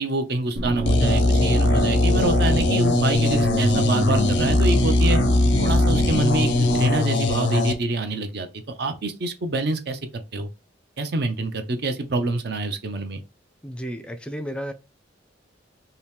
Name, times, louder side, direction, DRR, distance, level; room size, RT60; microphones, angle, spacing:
voice 1, 0.0-5.2 5.6-8.5 8.8-10.0 10.3-10.5 11.0-13.2, right 2 dB, 60° right, 0.5 m, -26 dB
sound 1, 0.6-6.9, right 1 dB, 90° right, 1.1 m, -26 dB
sound 2, 0.9-7.7, left 2 dB, 70° left, 0.5 m, -21 dB
voice 2, 13.6-14.7, equal, 5° left, 0.4 m, -32 dB
2.8 x 2.7 x 3.4 m
head